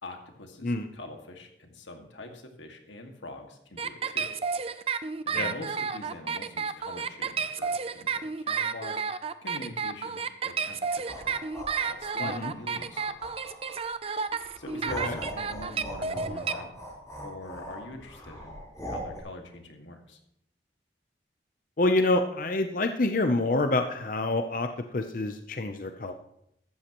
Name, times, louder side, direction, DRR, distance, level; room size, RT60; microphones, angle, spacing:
voice 1, 0.0-4.3 5.3-11.4 11.8-13.2 14.3-16.8 17.2-20.2, left 1 dB, 90° left, 4 dB, 2.0 m, -44 dB
sound 1, 3.8-16.5, right 6 dB, 30° right, 0.5 m, -31 dB
sound 2, 10.9-13.9 14.4-19.2, equal, 20° left, 5.9 m, -40 dB
voice 2, 12.2-12.5 15.0-15.2 21.8-26.1, left 2 dB, 45° left, 7 dB, 0.7 m, -27 dB
15.0 x 13.0 x 3.1 m, 0.75 s
head